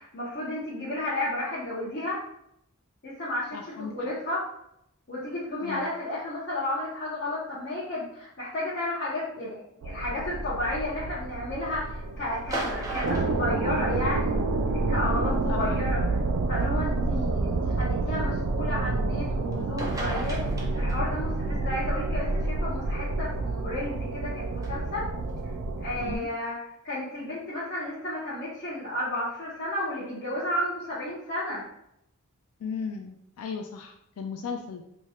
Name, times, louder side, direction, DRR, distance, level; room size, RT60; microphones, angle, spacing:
voice 1, 0.0-2.2 3.0-3.6 3.9-4.5 5.1-16.0 16.5-25.0 25.8-26.6 26.8-31.6, left 1 dB, 50° left, -10 dB, 1.0 m, -32 dB
voice 2, 3.5-4.1 5.6-5.9 15.5-15.8 26.0-26.3 32.6-34.8, left 5 dB, 80° left, 4 dB, 0.4 m, -36 dB
sound 1, 9.8-26.2, right 3 dB, 80° right, 0.4 m, -29 dB
sound 2, 12.4-14.3 15.6-15.7 16.6-16.7 19.5-19.6 19.8-21.2 24.6-24.7, right 1 dB, 15° right, 0.5 m, -36 dB
4.2 x 3.1 x 2.3 m, 0.77 s
head